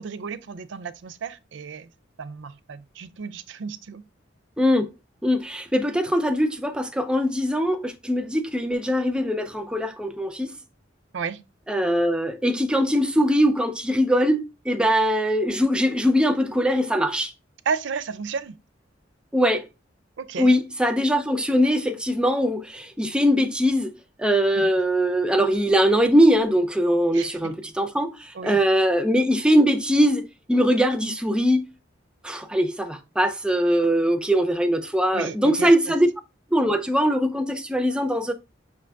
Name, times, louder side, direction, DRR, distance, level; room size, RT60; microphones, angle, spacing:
voice 1, 0.0-1.9 2.2-4.0 11.1-11.4 17.7-18.6 20.2-20.5 24.5-24.7 27.1-27.5 28.3-28.6 35.1-35.7, right 5 dB, 70° right, 0.4 m, -33 dB
voice 2, 4.6-4.9 5.2-10.5 11.7-17.3 19.3-19.7 20.4-23.9 24.2-30.2 30.5-31.6 32.2-36.1 36.5-38.3, equal, 5° right, 0.3 m, -21 dB
5.7 x 2.5 x 3.3 m
head